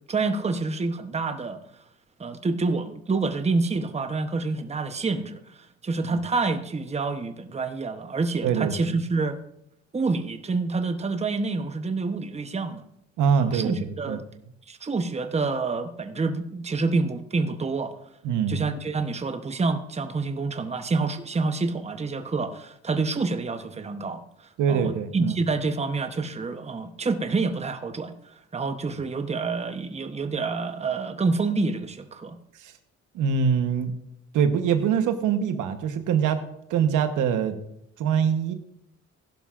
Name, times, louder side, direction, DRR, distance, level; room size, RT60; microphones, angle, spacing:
voice 1, 0.1-1.6 2.2-5.6 5.8-9.4 9.9-12.8 13.4-14.2 14.7-18.0 18.5-24.2 24.7-28.1 28.5-32.4, right 3 dB, 20° right, 8 dB, 0.9 m, -27 dB
voice 2, 8.4-9.0 13.2-14.2 18.2-18.7 24.6-25.3 32.6-32.7 33.1-33.9 34.3-36.4 36.7-37.6 38.0-38.5, right 7 dB, 85° right, 8 dB, 1.1 m, -24 dB
16.0 x 11.0 x 2.5 m, 0.78 s
cardioid pair, 90°, 30 cm